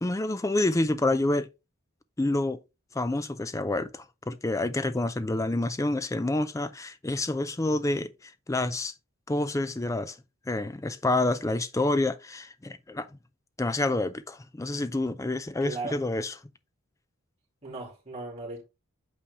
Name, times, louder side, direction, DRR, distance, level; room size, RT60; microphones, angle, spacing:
voice 1, 0.0-1.5 2.2-2.6 2.9-8.9 9.3-10.2 10.5-13.1 13.6-16.4, left 2 dB, 15° left, 0.4 m, -28 dB
voice 2, 15.6-16.0 17.6-18.6, right 3 dB, 30° right, 2.7 m, -37 dB
8.5 x 3.4 x 3.5 m
head